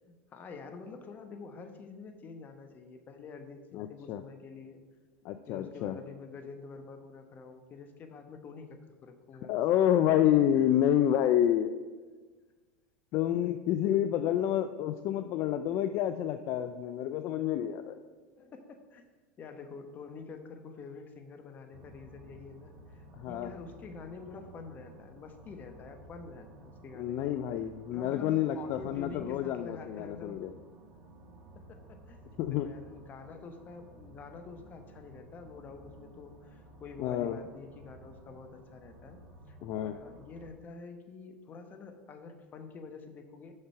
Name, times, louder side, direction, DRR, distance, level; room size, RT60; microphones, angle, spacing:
voice 1, 0.0-4.8 5.5-9.5 10.6-10.7 18.4-19.1 19.4-27.4 27.9-30.5 31.5-39.2 39.5-39.6 39.8-43.5, left 4 dB, 35° left, 7 dB, 1.1 m, -47 dB
voice 2, 3.7-4.2 5.2-6.0 9.5-11.7 13.1-18.0 23.2-23.5 27.0-30.5 32.4-32.7 37.0-37.4 39.6-40.0, left 11 dB, 55° left, 10 dB, 0.4 m, -28 dB
sound 1, 21.7-40.5, right 1 dB, 45° right, 1.5 m, -54 dB
6.5 x 6.0 x 5.6 m, 1.4 s
supercardioid pair, 105°, 5 cm